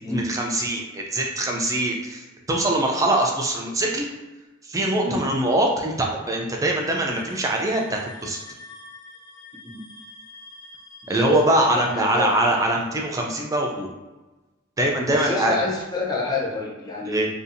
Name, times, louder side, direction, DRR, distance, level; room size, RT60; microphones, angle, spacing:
voice 1, 0.1-4.1 4.6-8.4 11.1-13.9 14.8-15.6 17.1-17.3, right 1 dB, 15° right, 0 dB, 0.3 m, -23 dB
sound 1, 7.1-12.6, left 2 dB, 65° left, 0.8 m, -45 dB
voice 2, 11.0-12.3 15.1-17.2, left 3 dB, 20° left, -5 dB, 0.6 m, -28 dB
2.6 x 2.3 x 2.5 m, 1.1 s
head